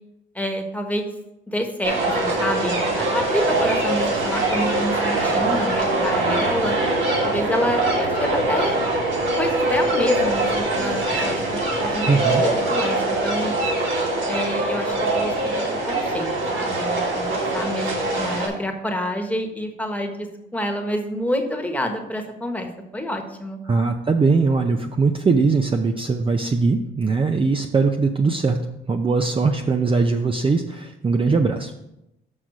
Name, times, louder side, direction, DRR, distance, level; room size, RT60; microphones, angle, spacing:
voice 1, 0.3-1.1 1.5-6.8 7.2-8.8 9.4-12.1 12.4-13.5 14.3-22.7 22.9-23.6, equal, 5° left, 3 dB, 1.3 m, -28 dB
sound 1, 1.8-18.5, right 2 dB, 75° right, 2.9 m, -23 dB
voice 2, 12.1-12.4 23.7-28.6 28.9-31.7, right 4 dB, 25° right, 5 dB, 0.6 m, -20 dB
6.4 x 5.9 x 5.2 m, 0.85 s
cardioid pair, 90°, 20 cm